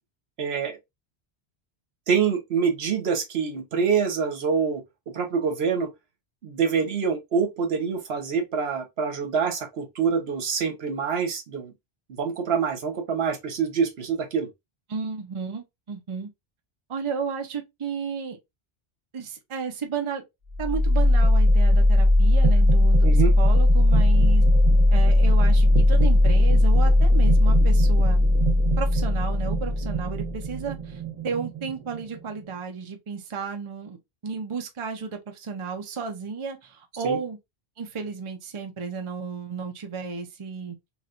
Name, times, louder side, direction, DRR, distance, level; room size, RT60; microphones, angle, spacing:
voice 1, 0.4-0.8 2.1-4.8 5.1-5.9 6.4-11.7 12.1-14.5 23.0-23.3 37.0-37.2, right 6 dB, 70° right, 1.1 m, -26 dB
voice 2, 14.9-16.3 16.9-18.4 19.1-20.2 20.6-23.1 23.4-24.4 24.9-28.2 28.8-34.0 34.2-37.4 37.8-40.8, right 5 dB, 35° right, 0.6 m, -33 dB
sound 1, 20.5-32.4, left 1 dB, 50° right, 1.5 m, -18 dB
3.1 x 2.9 x 2.4 m
omnidirectional pair, 1.1 m